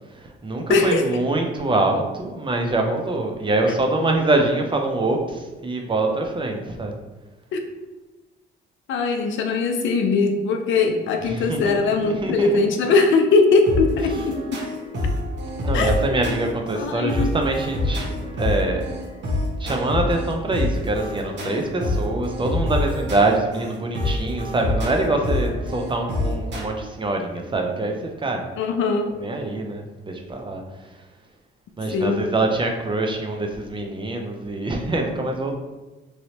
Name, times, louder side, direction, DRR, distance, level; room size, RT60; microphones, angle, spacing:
voice 1, 0.1-6.9 11.3-11.8 12.0-12.7 15.6-18.8 19.6-28.5 29.2-30.9 31.8-35.5, right 2 dB, 25° right, 3 dB, 0.5 m, -24 dB
voice 2, 0.7-1.1 7.5-7.6 8.9-14.6 15.7-16.2 16.7-17.3 28.6-29.1 31.9-32.2, left 3 dB, 75° left, 5 dB, 0.5 m, -20 dB
sound 1, 13.7-26.6, left 2 dB, 65° right, 1.0 m, -27 dB
3.1 x 2.6 x 2.8 m, 1.1 s
cardioid pair, 90°, 20 cm